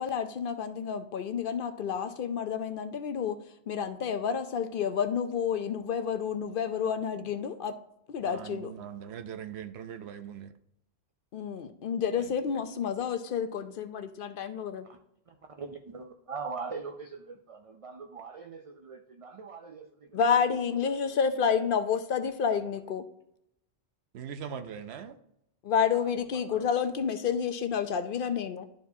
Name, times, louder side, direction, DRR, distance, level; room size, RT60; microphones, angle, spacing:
voice 1, 0.0-3.4 3.7-7.8 8.1-8.7 11.3-14.9 20.1-23.0 25.6-28.6, left 7 dB, 60° left, 0.7 m, -29 dB
voice 2, 8.2-10.5 24.1-25.1, right 8 dB, 75° right, 0.9 m, -40 dB
voice 3, 15.3-20.2 20.9-21.1 26.5-26.7, right 5 dB, 45° right, 0.4 m, -42 dB
11.5 x 4.7 x 2.7 m
omnidirectional pair, 1.1 m